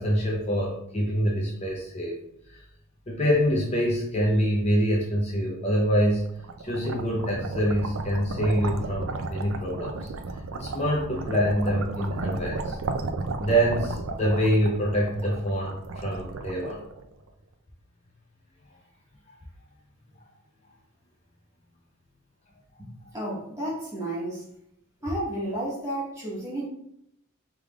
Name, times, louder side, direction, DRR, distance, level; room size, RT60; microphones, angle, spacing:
voice 1, 0.0-2.2 2.5-2.6 3.1-6.3 6.6-10.1 10.5-12.8 13.4-16.8, equal, 30° left, -3 dB, 0.7 m, -25 dB
sound 1, 6.1-17.3, right 3 dB, 70° right, 0.4 m, -34 dB
voice 2, 22.8-24.5 25.0-26.7, right 1 dB, 15° right, -7 dB, 1.6 m, -32 dB
4.8 x 3.5 x 2.4 m, 0.75 s
head